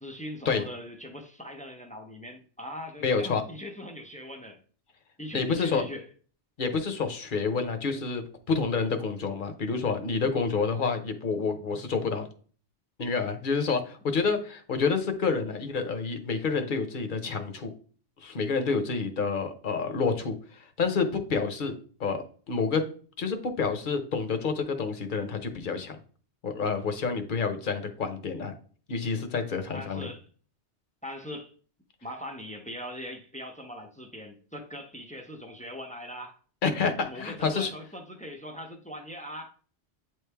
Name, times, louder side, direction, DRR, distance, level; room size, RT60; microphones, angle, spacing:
voice 1, 0.0-4.6 5.2-6.1 29.7-30.2 31.0-31.5 32.0-36.4 37.1-39.5, equal, 10° left, 0.4 m, -41 dB
voice 2, 3.0-3.4 5.3-5.8 6.6-12.3 13.0-17.7 18.2-21.7 22.0-22.8 23.2-26.0 26.4-28.5 28.9-30.1 36.6-37.7, left 5 dB, 50° left, 0.8 m, -28 dB
8.8 x 3.2 x 3.4 m
omnidirectional pair, 1.2 m